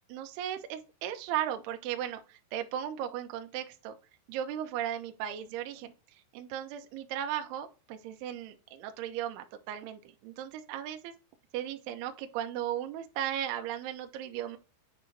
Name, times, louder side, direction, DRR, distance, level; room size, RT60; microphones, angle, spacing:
voice 1, 0.1-4.0 4.3-5.9 6.3-11.1 11.5-14.6, right 10 dB, 80° right, 2.4 m, -36 dB
8.9 x 3.1 x 3.8 m
omnidirectional pair, 5.4 m